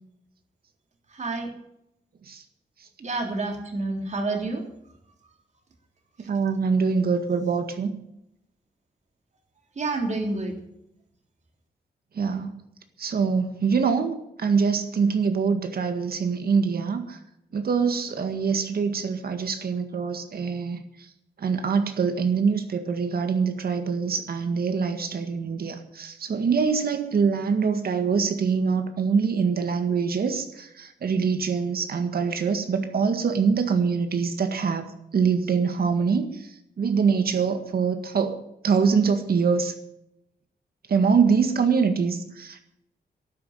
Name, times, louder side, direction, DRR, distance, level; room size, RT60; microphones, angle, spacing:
voice 1, 1.2-1.5 3.0-4.6 9.8-10.5, right 3 dB, 45° right, 3 dB, 3.5 m, -28 dB
voice 2, 6.3-8.0 12.2-12.5 13.0-17.2 17.5-20.8 21.4-36.5 36.8-38.4 38.6-39.7 40.9-42.6, right 5 dB, 60° right, 7 dB, 1.8 m, -24 dB
12.0 x 9.8 x 9.1 m, 0.80 s
wide cardioid pair, 140°, 17 cm